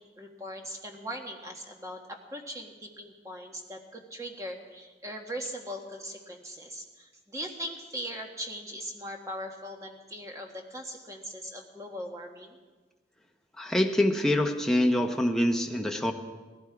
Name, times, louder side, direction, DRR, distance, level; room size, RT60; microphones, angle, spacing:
voice 1, 0.2-12.6, equal, 15° right, 2 dB, 1.6 m, -40 dB
voice 2, 13.6-16.1, left 1 dB, 5° left, 3 dB, 0.9 m, -25 dB
18.5 x 16.0 x 4.8 m, 1.3 s
head